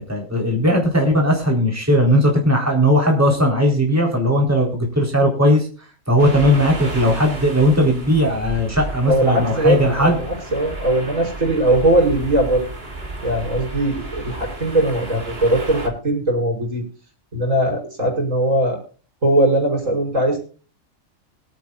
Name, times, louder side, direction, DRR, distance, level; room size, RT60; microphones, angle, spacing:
voice 1, 0.0-5.7 6.1-10.2, equal, 10° right, 0 dB, 3.8 m, -17 dB
sound 1, 6.2-15.9, right 2 dB, 50° right, 3.2 m, -32 dB
voice 2, 9.0-12.6 13.2-16.8 17.3-18.8 19.2-20.4, right 1 dB, 80° right, 0 dB, 6.2 m, -20 dB
24.5 x 8.7 x 2.4 m, 0.37 s
omnidirectional pair, 1.3 m